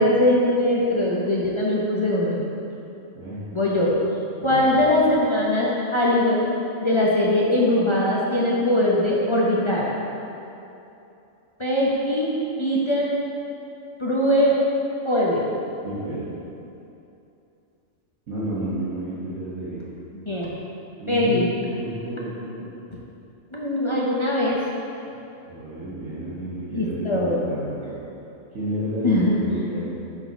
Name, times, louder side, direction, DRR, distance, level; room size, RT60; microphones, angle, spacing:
voice 1, 0.0-2.4 3.5-3.9 4.4-6.5 6.8-9.8 11.6-12.3 12.6-13.1 14.0-14.5 15.0-15.5 20.3-20.5 21.1-21.5 23.5-24.6 26.7-27.4 29.0-29.4, left 1 dB, 30° left, -6 dB, 0.5 m, -21 dB
voice 2, 4.4-4.8 15.8-16.2 18.3-19.8 21.0-21.4 21.8-22.7 25.5-27.9 28.5-29.9, right 1 dB, 85° right, -11 dB, 1.7 m, -31 dB
5.8 x 4.1 x 5.8 m, 2.8 s
omnidirectional pair, 1.4 m